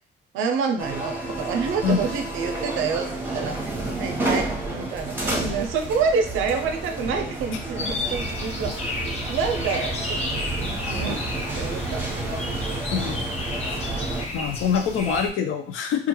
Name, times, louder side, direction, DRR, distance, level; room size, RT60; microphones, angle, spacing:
voice 1, 0.3-3.6 4.0-12.4 14.0-14.2, right 5 dB, 90° right, 5 dB, 0.5 m, -28 dB
sound 1, 0.8-14.3, right 2 dB, 10° right, 0.8 m, -30 dB
sound 2, 7.8-15.3, left 2 dB, 30° left, 0.6 m, -32 dB
voice 2, 12.9-13.2 14.3-16.1, left 7 dB, 85° left, 5 dB, 0.5 m, -24 dB
2.4 x 2.2 x 3.0 m, 0.43 s
cardioid pair, 90°, 20 cm